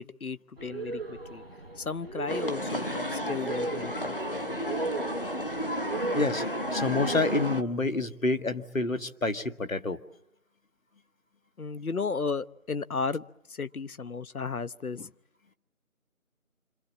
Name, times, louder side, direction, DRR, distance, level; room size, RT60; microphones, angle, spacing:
voice 1, 0.0-1.4 1.8-4.2 11.6-13.2 13.5-15.1, left 4 dB, 90° left, 16 dB, 1.0 m, -34 dB
sound 1, 0.6-7.4, right 3 dB, 45° right, 1.1 m, -37 dB
sound 2, 2.3-7.6, equal, 40° left, 1.0 m, -32 dB
voice 2, 6.1-6.4 6.7-10.0, left 3 dB, 70° left, 8 dB, 1.7 m, -28 dB
27.0 x 26.5 x 7.4 m, 0.83 s
figure-of-eight pair, 175°, 42 cm